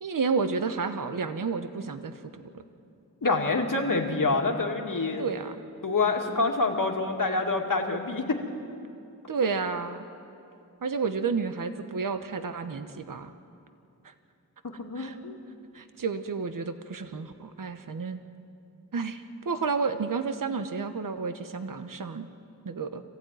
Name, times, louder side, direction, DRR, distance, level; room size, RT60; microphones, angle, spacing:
voice 1, 0.0-2.6 5.2-5.6 9.3-10.0 10.8-13.3 14.0-14.1 15.0-15.2 15.7-18.2 18.9-22.3 22.6-23.0, right 5 dB, 75° right, 9 dB, 1.1 m, -31 dB
voice 2, 3.2-5.2 5.8-8.4 14.6-15.4, left 3 dB, 70° left, 2 dB, 2.4 m, -27 dB
25.0 x 15.5 x 9.3 m, 2.6 s
wide cardioid pair, 55°, 33 cm